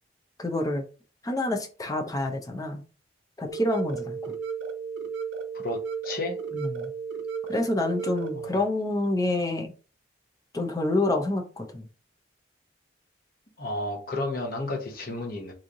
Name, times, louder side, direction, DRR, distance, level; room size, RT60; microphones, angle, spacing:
voice 1, 0.4-0.8 1.2-2.8 3.4-4.3 6.5-6.9 7.5-9.7 10.5-11.9, left 2 dB, 20° left, 0.5 m, -27 dB
sound 1, 3.5-8.5, right 5 dB, 80° right, 0.6 m, -34 dB
voice 2, 5.5-6.4 8.4-8.5 13.6-15.5, left 2 dB, 50° left, 0.9 m, -32 dB
3.1 x 2.6 x 3.7 m
head